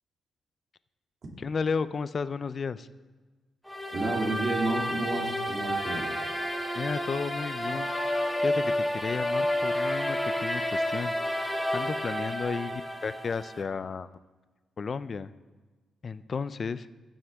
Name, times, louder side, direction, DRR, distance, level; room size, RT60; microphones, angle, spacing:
voice 1, 1.4-2.9 6.7-7.9 8.4-11.1 11.7-14.1 14.8-15.3 16.0-16.9, left 5 dB, 40° left, 14 dB, 0.4 m, -33 dB
sound 1, 3.7-13.6, left 1 dB, ahead, 1.1 m, -30 dB
voice 2, 3.9-6.1, right 2 dB, 50° right, 0 dB, 2.3 m, -31 dB
15.0 x 6.3 x 3.5 m, 1.3 s
cardioid pair, 100°, 0 cm